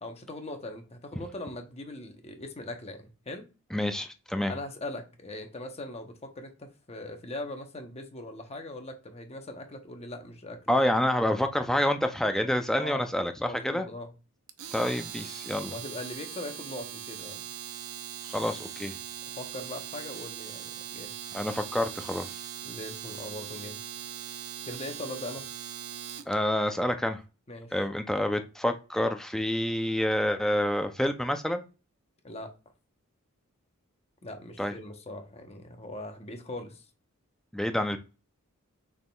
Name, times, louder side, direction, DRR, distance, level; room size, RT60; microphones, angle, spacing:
voice 1, 0.0-3.5 4.5-10.6 12.8-13.1 13.4-14.1 15.7-17.5 19.4-21.1 22.6-23.8 24.6-25.5 27.5-27.7 32.2-32.5 34.2-36.9, left 1 dB, 30° left, 5 dB, 0.8 m, -40 dB
voice 2, 3.7-4.5 10.7-13.9 14.7-15.7 18.2-19.0 21.3-22.4 26.3-27.2 27.7-31.6 34.6-34.7 37.5-38.0, left 1 dB, ahead, 6 dB, 0.4 m, -28 dB
Domestic sounds home sounds, 14.5-26.3, right 10 dB, 80° right, 0.5 m, -40 dB
6.3 x 3.6 x 2.3 m, 0.32 s
head